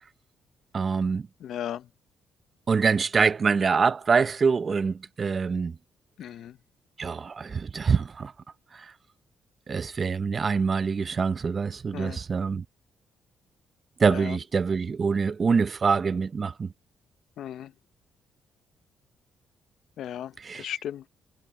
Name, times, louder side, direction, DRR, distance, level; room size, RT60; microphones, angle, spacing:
voice 1, 0.7-1.3 2.7-5.8 7.0-8.3 8.7-8.9 9.7-12.6 14.0-16.7 20.4-20.7, right 5 dB, 40° right, 0.8 m, -25 dB
voice 2, 1.4-1.9 6.2-6.6 11.9-12.2 14.1-14.4 17.4-17.7 20.0-21.1, left 10 dB, 75° left, 0.8 m, -36 dB
cardioid pair, 90°, 0 cm